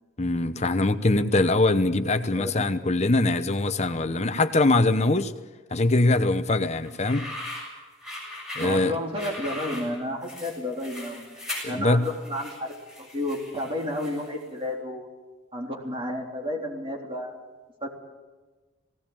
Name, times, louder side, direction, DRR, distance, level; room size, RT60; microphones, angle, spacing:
voice 1, 0.2-5.3 5.7-7.3 8.6-8.9 11.8-12.1, left 2 dB, 30° left, 10 dB, 0.9 m, -22 dB
voice 2, 2.4-2.7 8.6-11.3 11.6-12.7 13.0-15.1 15.5-17.4 17.8-17.9, left 1 dB, 25° right, -1 dB, 3.7 m, -31 dB
sound 1, 6.9-14.4, left 1 dB, ahead, 7.4 m, -39 dB
19.0 x 17.5 x 8.9 m, 1.2 s
head